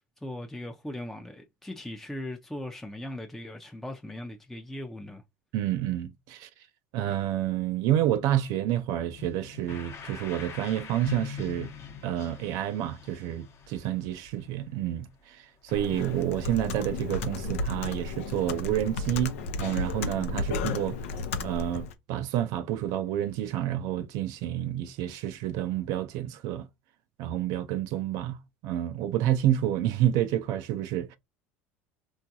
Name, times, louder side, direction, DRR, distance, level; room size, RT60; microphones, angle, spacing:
voice 1, 0.0-5.2, left 1 dB, 5° left, 0.5 m, -39 dB
voice 2, 5.5-6.5 6.9-11.7 12.0-21.0 21.4-26.7 27.2-28.4 28.6-31.2, right 12 dB, 65° right, 0.4 m, -29 dB
sound 1, 9.2-15.2 15.7-16.2, left 7 dB, 40° left, 0.8 m, -43 dB
Computer keyboard, 15.7-21.9, left 3 dB, 85° left, 0.5 m, -33 dB
3.6 x 2.3 x 2.8 m
supercardioid pair, 90°, 7 cm